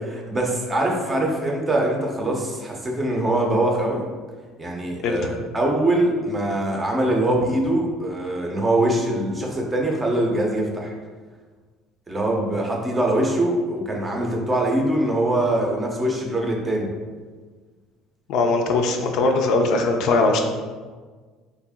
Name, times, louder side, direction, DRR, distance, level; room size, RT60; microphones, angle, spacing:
voice 1, 0.0-4.1 4.6-10.9 12.1-16.9, right 1 dB, 20° right, 0 dB, 0.6 m, -23 dB
voice 2, 18.3-20.4, left 3 dB, 65° left, 3 dB, 0.4 m, -20 dB
3.0 x 2.5 x 3.5 m, 1.4 s
cardioid pair, 120°, 0 cm